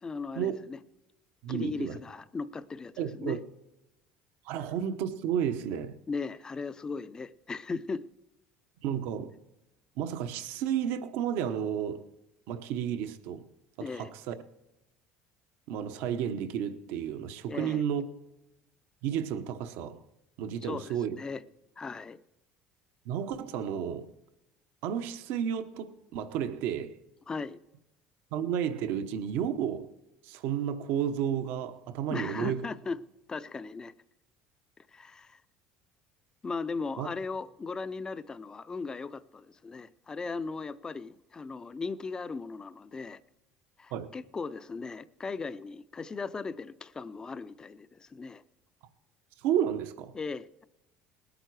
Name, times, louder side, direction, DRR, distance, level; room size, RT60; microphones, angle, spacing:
voice 1, 0.0-0.8 1.5-3.4 6.1-8.1 13.8-14.1 17.5-17.8 20.6-21.4 21.8-22.2 27.3-27.6 32.1-33.0 33.3-33.9 34.8-35.4 36.4-43.2 43.8-48.4 50.1-50.7, left 4 dB, 20° left, 0.4 m, -37 dB
voice 2, 1.4-2.0 3.0-3.4 4.4-5.9 8.8-9.3 10.0-12.0 12.5-13.5 13.8-14.3 15.7-18.1 19.0-20.0 20.4-21.2 23.0-24.1 24.8-26.9 28.3-29.9 30.2-32.6 37.0-37.1 43.9-44.1 49.4-50.1, right 9 dB, 75° right, 1.0 m, -32 dB
20.0 x 9.0 x 4.7 m
cardioid pair, 130°, 4 cm